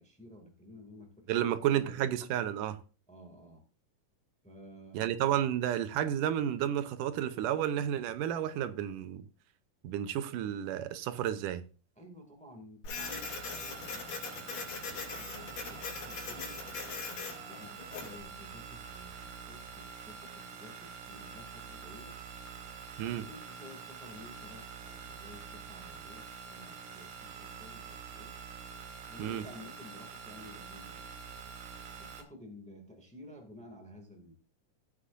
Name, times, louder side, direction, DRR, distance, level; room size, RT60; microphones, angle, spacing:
voice 1, 0.0-2.1 3.1-3.6 4.4-5.1 11.9-15.4 15.7-16.6 17.5-22.2 23.0-28.3 29.1-31.0 32.0-34.3, left 1 dB, 5° left, 1.6 m, -52 dB
voice 2, 1.3-2.8 4.9-9.2 9.8-11.6 23.0-23.2 29.2-29.4, right 10 dB, 85° right, 2.4 m, -31 dB
Printer, 12.8-18.2, left 5 dB, 75° left, 4.3 m, -41 dB
sound 1, 13.0-32.2, right 6 dB, 65° right, 2.8 m, -46 dB
15.5 x 8.3 x 2.6 m
omnidirectional pair, 3.7 m